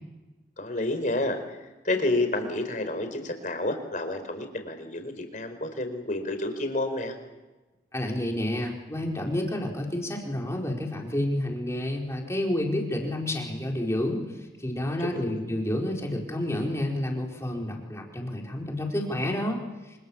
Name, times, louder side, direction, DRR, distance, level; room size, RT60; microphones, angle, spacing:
voice 1, 0.6-1.6 1.8-7.1 15.0-15.4, left 2 dB, 45° left, 7 dB, 4.5 m, -29 dB
voice 2, 7.9-14.2 14.6-20.1, left 1 dB, 15° left, 0 dB, 4.6 m, -29 dB
27.5 x 27.0 x 7.2 m, 1.1 s
head